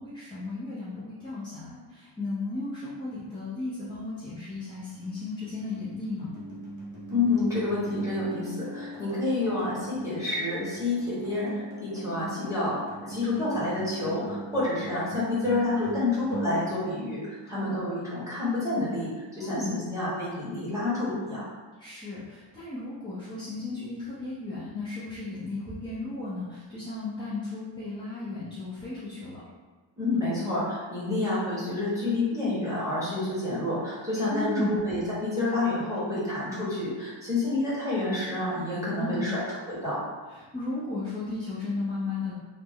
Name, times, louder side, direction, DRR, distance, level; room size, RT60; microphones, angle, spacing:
voice 1, 0.0-6.3 17.4-17.8 19.4-19.7 21.8-29.4 34.3-34.7 38.9-39.3 40.3-42.3, left 2 dB, 10° left, -11 dB, 0.5 m, -35 dB
sound 1, 3.8-17.9, right 2 dB, 40° right, 0.7 m, -40 dB
voice 2, 7.1-19.1 19.4-21.5 30.0-39.4 39.7-40.0, left 2 dB, 5° right, -10 dB, 1.0 m, -29 dB
3.3 x 2.0 x 3.5 m, 1.3 s
wide cardioid pair, 175°, 47 cm